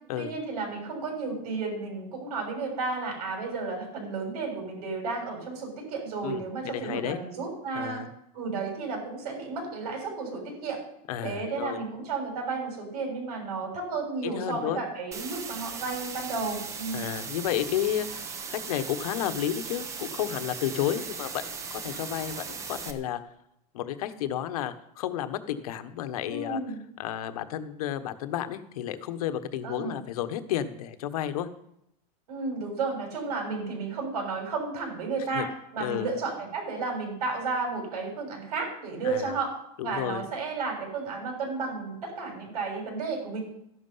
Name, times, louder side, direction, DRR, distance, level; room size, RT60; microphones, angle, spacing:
voice 1, 0.2-8.1 8.3-10.8 11.2-17.1 26.3-26.8 29.6-30.0 32.3-39.6 39.8-43.4, right 4 dB, 90° right, 2 dB, 7.0 m, -32 dB
voice 2, 6.2-7.2 7.7-8.1 11.1-11.8 14.2-14.8 16.9-23.2 23.7-26.6 27.0-31.5 35.3-35.5 35.8-36.1 39.0-39.4 39.8-40.3, left 11 dB, 75° left, 10 dB, 1.3 m, -32 dB
sound 1, 15.1-22.9, right 5 dB, 15° right, 0.8 m, -38 dB
13.5 x 11.5 x 5.6 m, 0.78 s
supercardioid pair, 180°, 19 cm